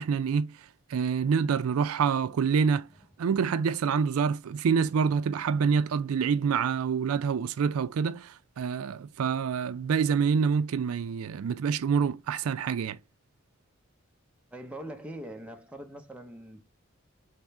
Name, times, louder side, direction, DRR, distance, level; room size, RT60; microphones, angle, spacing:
voice 1, 0.0-2.9 3.2-13.0, right 6 dB, 90° right, 0.4 m, -27 dB
voice 2, 14.5-16.6, right 1 dB, 5° right, 0.6 m, -42 dB
3.6 x 3.3 x 4.1 m
head